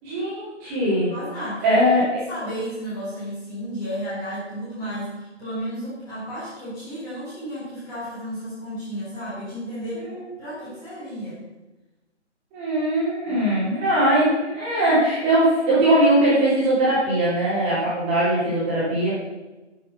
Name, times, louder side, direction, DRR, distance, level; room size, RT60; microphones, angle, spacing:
voice 1, 0.0-1.1 1.6-2.1 10.0-10.2 12.5-19.1, right 1 dB, 15° right, -10 dB, 3.3 m, -20 dB
voice 2, 1.1-1.6 2.0-11.4 13.2-13.4 13.9-14.0, equal, 10° left, -10 dB, 3.6 m, -33 dB
10.0 x 7.4 x 6.2 m, 1.1 s
figure-of-eight pair, 165°, 36 cm